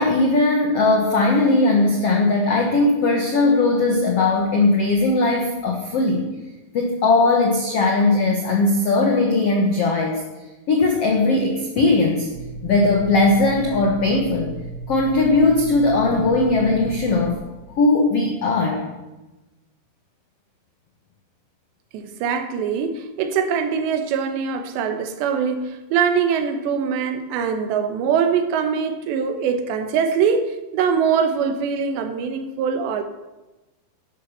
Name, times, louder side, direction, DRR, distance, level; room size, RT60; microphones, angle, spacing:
voice 1, 0.0-6.3 6.7-10.2 10.7-12.3 12.6-14.6 14.9-17.4 17.8-18.8, left 2 dB, 85° left, 1.3 m, -19 dB
sound 1, 12.3-17.4, right 3 dB, 70° right, 2.9 m, -34 dB
voice 2, 21.9-33.0, right 6 dB, 85° right, 3.3 m, -23 dB
12.0 x 11.0 x 6.7 m
omnidirectional pair, 5.0 m